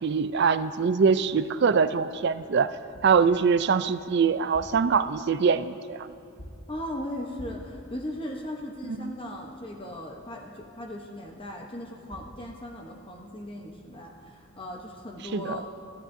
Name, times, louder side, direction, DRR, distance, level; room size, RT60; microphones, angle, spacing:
voice 1, 0.0-2.7 3.0-6.1 8.9-9.1 15.3-15.6, right 5 dB, 50° right, 13 dB, 0.4 m, -23 dB
sound 1, 2.9-3.3 4.4-4.9 6.4-6.8 7.4-7.8 11.8-11.9 12.1-12.4, equal, 80° left, 1.9 m, -45 dB
voice 2, 6.7-15.7, left 1 dB, 25° left, 1 dB, 0.9 m, -38 dB
22.5 x 14.0 x 2.7 m, 2.4 s
head